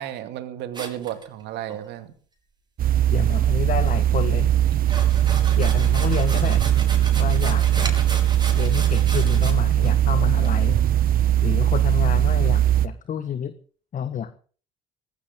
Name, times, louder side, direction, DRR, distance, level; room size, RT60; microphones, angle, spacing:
voice 1, 0.0-2.1, right 12 dB, 65° right, 9 dB, 2.4 m, -33 dB
sound 1, 0.7-1.8 4.7-9.5 9.8-9.9 10.4-10.5, right 3 dB, 25° right, 5.3 m, -35 dB
sound 2, 2.8-12.9, right 12 dB, 50° right, 1.2 m, -20 dB
voice 2, 3.1-4.5 5.6-6.7 7.2-8.0 8.5-10.8 11.4-13.5 13.9-14.4, left 8 dB, 45° left, 12 dB, 1.3 m, -29 dB
18.5 x 16.5 x 3.9 m, 0.41 s
hypercardioid pair, 60°, 19 cm